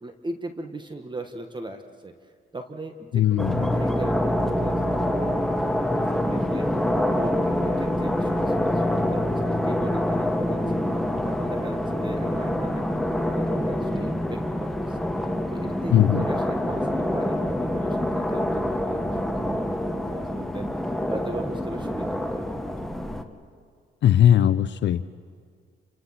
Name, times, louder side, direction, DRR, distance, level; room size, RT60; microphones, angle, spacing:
voice 1, 0.0-2.1 2.5-5.9 6.1-10.6 10.9-22.4, right 2 dB, 25° right, 6 dB, 1.6 m, -38 dB
voice 2, 3.1-3.7 15.9-16.2 24.0-25.1, left 10 dB, 65° left, 13 dB, 0.7 m, -19 dB
sound 1, 3.4-23.2, left 1 dB, ahead, 1.5 m, -26 dB
28.5 x 26.0 x 5.9 m, 2.1 s
cardioid pair, 90°, 20 cm